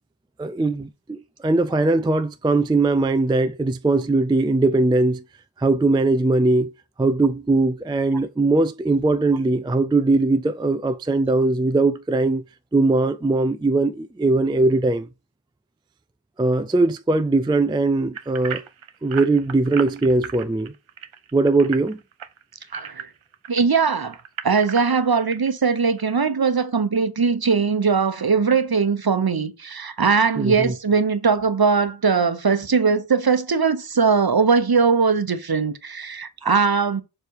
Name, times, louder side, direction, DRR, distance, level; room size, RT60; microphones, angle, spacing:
voice 1, 0.4-5.2 5.6-6.7 7.0-12.4 12.7-15.1 16.4-18.6 19.0-20.7 21.3-22.0 30.4-30.7, right 2 dB, 10° right, 0.3 m, -20 dB
sound 1, 18.1-23.6 24.1-25.5 26.0-26.1 26.6-26.7, right 8 dB, 80° right, 0.7 m, -35 dB
voice 2, 22.7-23.1 23.5-24.2 24.4-37.0, right 5 dB, 50° right, 0.9 m, -20 dB
6.9 x 3.3 x 4.7 m
wide cardioid pair, 50°, 47 cm